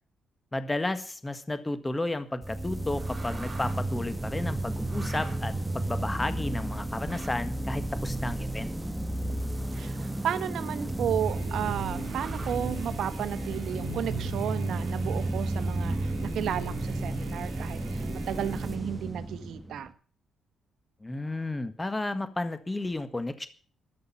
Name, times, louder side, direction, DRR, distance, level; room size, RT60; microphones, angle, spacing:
voice 1, 0.5-8.7 21.0-23.5, left 2 dB, 15° left, 11 dB, 1.6 m, -32 dB
sound 1, 2.4-19.9, right 1 dB, 10° right, 1.4 m, -33 dB
sound 2, 3.0-3.9 4.8-5.6 7.1-7.5 9.1-10.9 11.9-12.5, right 3 dB, 25° right, 5.9 m, -47 dB
voice 2, 9.2-19.9, right 10 dB, 70° right, 12 dB, 1.2 m, -33 dB
sound 3, 11.2-19.0, right 6 dB, 85° right, 1.7 m, -42 dB
13.5 x 6.5 x 8.9 m, 0.44 s
cardioid pair, 90°, 0 cm